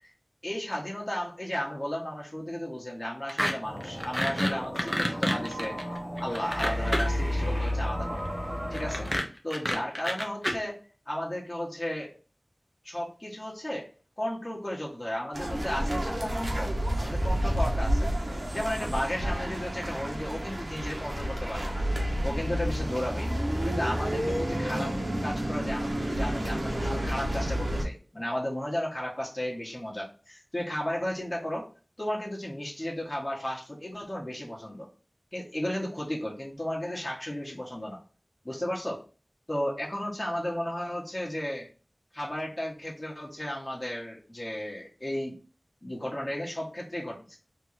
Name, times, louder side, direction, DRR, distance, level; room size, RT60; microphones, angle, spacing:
voice 1, 0.4-8.3 8.7-9.1 9.4-10.8 11.1-12.1 12.8-13.9 14.2-21.9 22.2-23.3 23.6-24.9 25.2-31.7 32.0-34.9 35.3-38.0 38.4-39.0 39.5-41.7 42.1-45.4 45.8-47.4, left 1 dB, 30° left, -3 dB, 1.5 m, -34 dB
sound 1, 3.3-3.5 3.8-7.2 8.7-10.5, equal, 5° left, 0.9 m, -28 dB
sound 2, 3.6-9.2, equal, 30° right, 1.9 m, -32 dB
sound 3, 15.3-27.8, equal, 75° right, 1.2 m, -30 dB
3.6 x 2.9 x 4.6 m, 0.36 s
wide cardioid pair, 50°, 0 cm